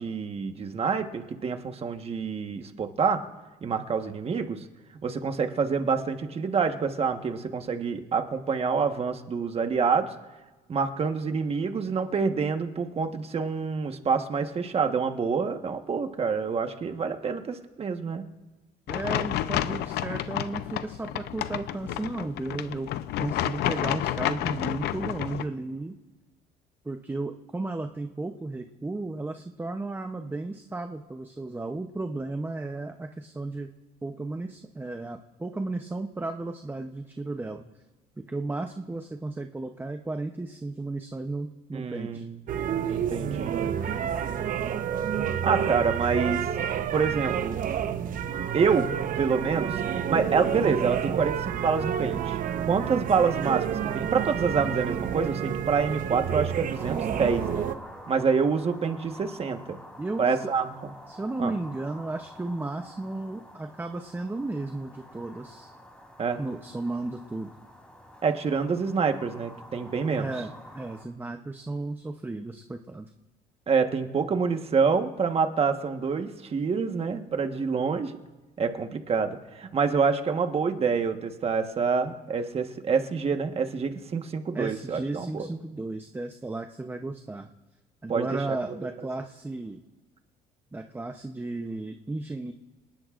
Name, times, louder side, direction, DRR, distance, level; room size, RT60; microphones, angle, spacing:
voice 1, 0.0-3.2 3.6-4.6 5.0-10.1 10.7-18.3 41.7-42.4 42.9-43.5 45.4-46.4 46.9-47.6 48.5-48.9 49.2-52.4 52.7-57.7 58.1-59.8 60.2-60.9 61.4-61.5 66.2-66.4 68.2-70.3 73.7-78.2 78.6-85.5 88.1-88.6, right 5 dB, 35° right, 6 dB, 1.3 m, -27 dB
sound 1, 18.9-25.4, left 12 dB, 75° left, 0.7 m, -30 dB
voice 2, 18.9-22.9 23.2-26.0 26.8-33.7 34.0-37.7 38.2-42.3 60.0-60.4 61.1-65.7 66.4-67.5 70.2-73.1 84.5-87.5 88.0-89.8 90.7-92.5, right 2 dB, 10° right, 5 dB, 0.8 m, -34 dB
sound 2, 42.5-57.8, right 9 dB, 55° right, 1.0 m, -29 dB
sound 3, 56.7-71.0, equal, 5° left, 3.3 m, -48 dB
27.0 x 19.0 x 2.5 m, 1.2 s
cardioid pair, 110°, 17 cm